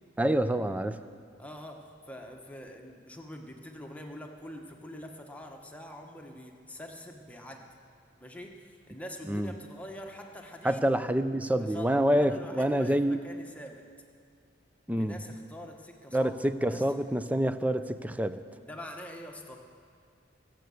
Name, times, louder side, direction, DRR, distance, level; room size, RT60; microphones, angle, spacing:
voice 1, 0.2-1.0 9.3-9.5 10.6-13.2 14.9-15.2 16.1-18.4, right 1 dB, 10° right, 11 dB, 0.4 m, -27 dB
voice 2, 1.4-7.7 8.2-10.9 11.6-13.8 15.0-16.3 16.7-16.9 18.6-19.6, equal, 10° left, 2 dB, 1.2 m, -45 dB
22.5 x 7.7 x 7.0 m, 2.2 s
head